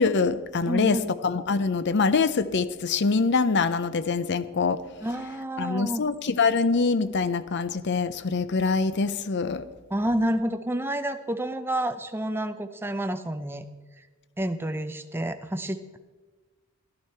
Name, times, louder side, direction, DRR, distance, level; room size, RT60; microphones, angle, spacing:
voice 1, 0.0-4.8 5.6-9.7, left 4 dB, 50° left, 14 dB, 0.6 m, -24 dB
voice 2, 0.6-1.2 5.0-6.0 9.9-13.6 14.4-16.0, right 1 dB, 10° right, 8 dB, 0.6 m, -29 dB
15.0 x 11.5 x 4.4 m, 1.3 s
head